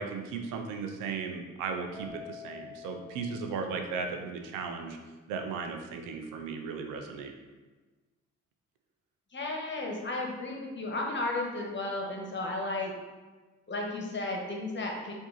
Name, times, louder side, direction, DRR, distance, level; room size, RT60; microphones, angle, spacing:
voice 1, 0.0-5.0 5.3-7.3, right 5 dB, 85° right, 5 dB, 0.6 m, -36 dB
Keyboard (musical), 1.9-4.4, left 7 dB, 10° left, 1.5 m, -48 dB
voice 2, 9.3-12.9 13.7-15.1, left 2 dB, 35° left, 0 dB, 1.2 m, -34 dB
4.6 x 2.8 x 3.9 m, 1.3 s
supercardioid pair, 60°, 31 cm